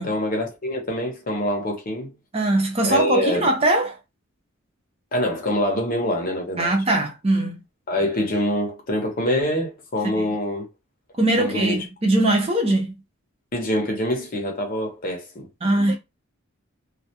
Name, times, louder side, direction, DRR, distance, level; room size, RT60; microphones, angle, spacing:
voice 1, 0.0-2.1 2.8-3.5 5.1-6.7 7.9-10.7 11.4-11.8 13.5-15.5, left 1 dB, 40° left, 0.7 m, -25 dB
voice 2, 2.3-4.0 6.6-7.6 10.0-10.3 11.2-12.9 15.6-16.0, right 1 dB, 30° right, 0.6 m, -21 dB
2.3 x 2.1 x 2.8 m
head